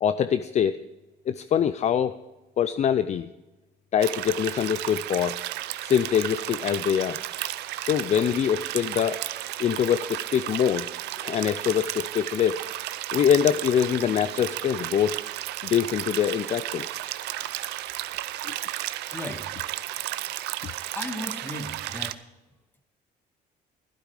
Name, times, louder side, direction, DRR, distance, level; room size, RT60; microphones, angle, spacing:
voice 1, 0.0-0.8 1.3-2.2 2.6-3.3 3.9-5.4 5.8-7.2 7.8-9.2 9.6-10.9 11.2-12.6 13.1-15.2 15.6-16.9 18.4-18.5, left 8 dB, 40° left, 12 dB, 0.5 m, -24 dB
Waterstream small, 4.0-22.1, right 15 dB, 80° right, 0.6 m, -33 dB
voice 2, 19.1-19.5 20.9-22.2, left 1 dB, 10° left, 5 dB, 1.7 m, -36 dB
12.5 x 12.0 x 4.9 m, 1.1 s
cardioid pair, 110°, 17 cm